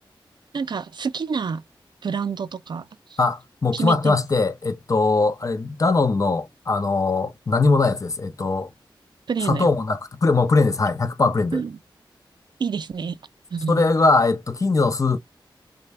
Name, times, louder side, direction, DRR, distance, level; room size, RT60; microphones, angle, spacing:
voice 1, 0.5-1.6 2.0-3.2 3.7-4.2 9.3-9.7 11.5-11.8 12.6-13.2 13.5-13.9, right 5 dB, 60° right, 0.4 m, -28 dB
voice 2, 3.2-8.7 9.4-11.6 13.7-15.2, left 3 dB, 40° left, 0.5 m, -21 dB
3.3 x 2.1 x 3.2 m
wide cardioid pair, 110°, 9 cm